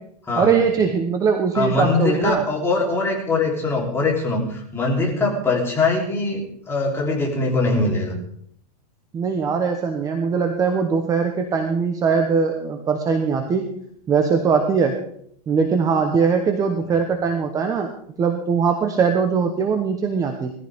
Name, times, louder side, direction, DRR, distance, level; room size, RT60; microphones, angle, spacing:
voice 1, 0.3-2.4 5.0-5.2 9.1-13.7 14.1-15.0 15.5-17.9 18.2-20.5, right 5 dB, 15° right, 5 dB, 1.0 m, -21 dB
voice 2, 1.5-8.1, left 3 dB, 10° left, -2 dB, 3.5 m, -22 dB
19.5 x 15.0 x 3.6 m, 0.68 s
supercardioid pair, 160°, 21 cm